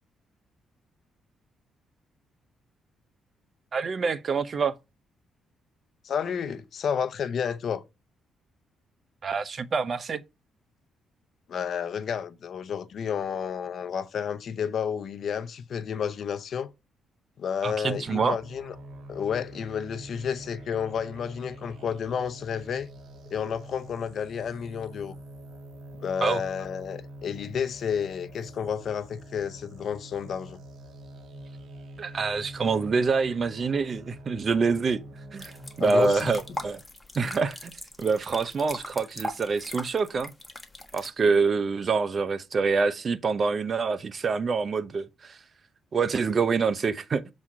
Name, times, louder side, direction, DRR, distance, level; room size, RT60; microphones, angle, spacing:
voice 1, 3.7-4.7 9.2-10.2 17.6-18.4 26.2-26.4 32.0-35.0 35.3-35.5 35.8-36.8 37.1-37.7 38.0-40.3 40.9-45.4 45.9-47.2, right 4 dB, 45° right, 0.8 m, -26 dB
voice 2, 6.0-7.8 11.5-16.7 17.4-18.7 19.1-22.9 23.3-25.2 26.0-30.6 35.8-36.3, left 7 dB, 60° left, 0.8 m, -31 dB
sound 1, 18.1-36.6, right 1 dB, 60° right, 1.6 m, -45 dB
sound 2, 35.4-41.1, left 1 dB, 10° left, 1.4 m, -40 dB
7.3 x 4.3 x 4.8 m
cardioid pair, 90°, 0 cm